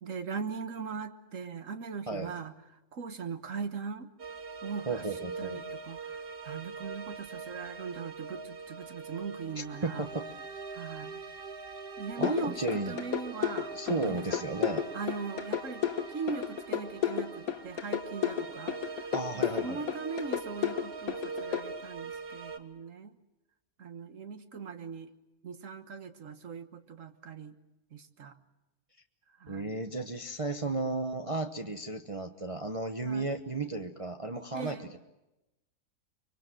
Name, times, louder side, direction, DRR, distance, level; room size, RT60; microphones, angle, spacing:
voice 1, 0.0-2.5 2.9-4.1 4.6-5.0 5.4-6.2 6.4-10.1 10.7-11.2 12.0-14.4 14.9-23.1 23.8-25.1 25.4-27.5 27.9-28.4 29.4-29.7 33.0-33.3 34.5-34.9, right 5 dB, 65° right, 9 dB, 1.7 m, -40 dB
sound 1, 4.2-22.6, right 4 dB, 45° right, 1.4 m, -43 dB
voice 2, 4.9-5.6 9.6-10.3 12.2-12.9 13.7-14.9 19.1-19.8 29.5-35.0, right 2 dB, 25° right, 5 dB, 0.9 m, -34 dB
sound 2, 12.2-21.6, left 9 dB, 85° left, 1.7 m, -32 dB
24.5 x 24.0 x 7.7 m, 0.96 s
omnidirectional pair, 1.5 m